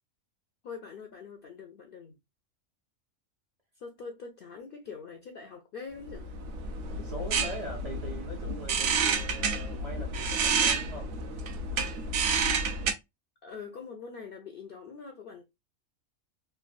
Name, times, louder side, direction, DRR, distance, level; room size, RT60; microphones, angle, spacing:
voice 1, 0.6-2.2 3.8-6.3 13.4-15.4, left 5 dB, 65° left, 0.5 m, -44 dB
sound 1, 6.1-12.9, right 4 dB, 65° right, 0.9 m, -30 dB
voice 2, 6.9-11.1, equal, 45° right, 0.5 m, -42 dB
3.2 x 2.2 x 2.4 m
omnidirectional pair, 1.4 m